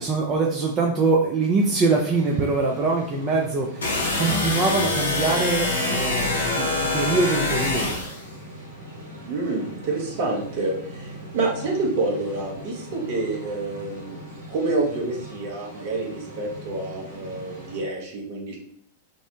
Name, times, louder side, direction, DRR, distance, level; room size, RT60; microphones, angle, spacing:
voice 1, 0.0-8.0, right 3 dB, 30° right, -1 dB, 0.4 m, -23 dB
sound 1, 1.6-17.8, equal, 80° right, 1.3 m, -41 dB
sound 2, 3.8-8.2, left 2 dB, 80° left, 0.6 m, -24 dB
voice 2, 9.3-14.2 14.5-18.6, right 3 dB, 50° right, -1 dB, 0.8 m, -28 dB
2.6 x 2.0 x 2.7 m, 0.63 s
figure-of-eight pair, 95°, 0 cm